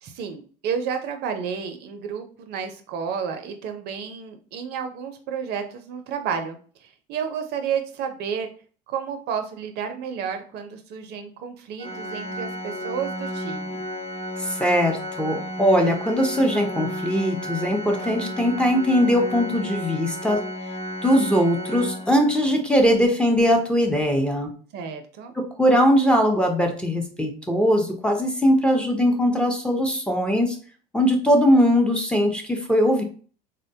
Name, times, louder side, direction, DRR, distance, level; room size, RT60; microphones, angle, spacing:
voice 1, 0.0-8.5 8.9-13.8 24.7-25.3, right 7 dB, 60° right, 6 dB, 0.6 m, -31 dB
Organ, 11.8-22.6, equal, 30° left, 1.0 m, -33 dB
voice 2, 14.4-20.4 21.0-24.5 25.4-30.6 30.9-33.0, equal, 5° left, 3 dB, 0.7 m, -20 dB
3.7 x 2.1 x 2.7 m, 0.42 s
hypercardioid pair, 80°, 20 cm